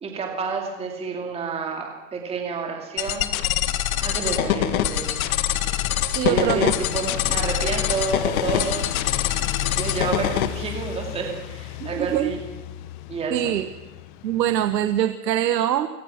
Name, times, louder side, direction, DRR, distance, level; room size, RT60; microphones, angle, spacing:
voice 1, 0.0-3.3 4.0-5.1 6.3-8.9 9.7-12.4 13.1-13.5, right 5 dB, 10° right, 1 dB, 2.8 m, -29 dB
sound 1, 3.0-10.5, left 12 dB, 55° left, 1.9 m, -24 dB
sound 2, 3.3-15.0, left 12 dB, 30° left, 0.9 m, -36 dB
voice 2, 6.1-6.7 11.8-12.3 13.3-13.7 14.2-15.9, right 11 dB, 80° right, 9 dB, 1.5 m, -23 dB
25.5 x 25.0 x 6.0 m, 1.2 s
supercardioid pair, 160°, 49 cm